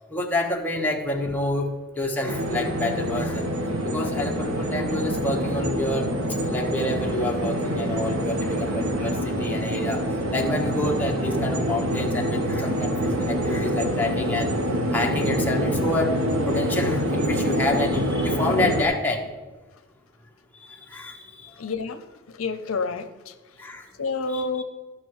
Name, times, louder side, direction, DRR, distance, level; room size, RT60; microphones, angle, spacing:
voice 1, 0.1-3.5 3.8-6.1 6.4-10.0 10.3-14.5 14.9-16.2 16.4-19.3 20.6-21.5 23.6-23.8 24.3-24.6, left 2 dB, 10° left, 0 dB, 1.0 m, -28 dB
sound 1, 2.3-18.8, equal, 85° right, 1.2 m, -26 dB
voice 2, 21.6-23.3 24.0-24.6, left 4 dB, 80° left, 10 dB, 0.6 m, -29 dB
13.5 x 5.8 x 4.7 m, 1.3 s
head